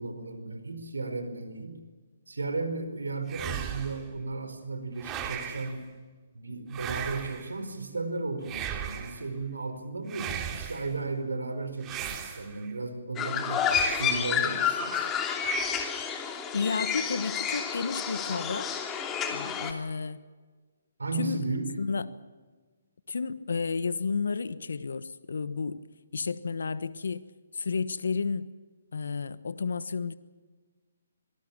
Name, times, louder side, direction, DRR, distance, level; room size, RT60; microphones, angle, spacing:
voice 1, 0.0-1.8 2.3-5.8 6.3-13.7 14.0-15.1 21.0-21.7, right 3 dB, 85° right, 9 dB, 4.8 m, -35 dB
sound 1, 3.3-4.1 5.0-5.7 6.7-7.5 8.4-9.2 10.1-10.9 11.8-12.7 13.6-14.3 15.4-16.1, right 9 dB, 20° right, 2.8 m, -37 dB
sound 2, 13.2-19.7, left 7 dB, 15° left, 2.9 m, -30 dB
voice 2, 16.5-18.7 19.3-20.3 21.2-21.4 21.8-22.1 23.1-25.8 26.1-28.5 28.9-30.1, left 5 dB, 70° left, 15 dB, 1.2 m, -32 dB
25.5 x 19.0 x 7.4 m, 1.4 s
figure-of-eight pair, 140°, 0 cm